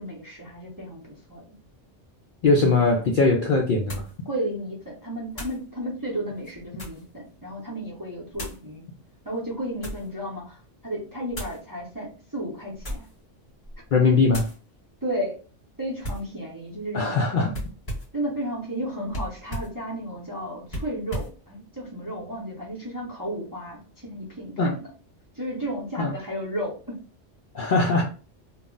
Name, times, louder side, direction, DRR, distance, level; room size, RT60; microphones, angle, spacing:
voice 1, 0.0-1.6 2.8-2.9 4.2-8.9 9.2-13.1 14.0-14.1 15.0-15.4 15.8-17.2 18.1-24.9 25.3-27.0, right 1 dB, 20° right, -4 dB, 0.6 m, -33 dB
voice 2, 2.4-4.0 13.9-14.4 16.9-17.5 24.6-24.7 26.0-26.1 27.5-28.0, left 3 dB, 60° left, 0 dB, 0.5 m, -20 dB
sound 1, 2.8-2.9 3.9-4.2 5.3-5.6 6.4-7.1 8.3-8.7 9.4-10.1 11.3-11.6 12.7-13.2 13.6-13.9 14.3-14.6 16.0-16.3 17.5-18.2 19.1-19.8 20.7-21.4, equal, 30° left, 1.1 m, -35 dB
2.3 x 2.0 x 3.7 m, 0.37 s
omnidirectional pair, 1.3 m